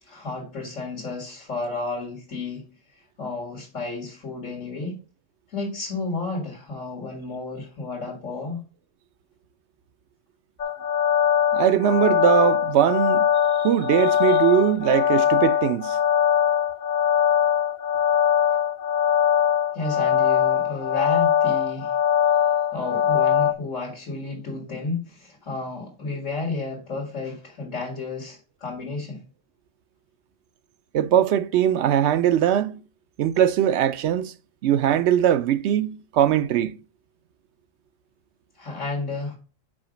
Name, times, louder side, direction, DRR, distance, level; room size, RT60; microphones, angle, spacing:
voice 1, 0.0-5.0 5.5-8.6 19.7-22.0 22.7-29.2 38.5-39.4, left 3 dB, 85° left, 2.4 m, -32 dB
sound 1, 10.6-23.5, left 9 dB, 50° left, 0.6 m, -21 dB
voice 2, 11.5-13.3 13.6-16.0 30.9-32.8 33.2-34.3 34.6-36.8, right 10 dB, 70° right, 0.8 m, -21 dB
6.2 x 5.0 x 4.9 m
omnidirectional pair, 1.3 m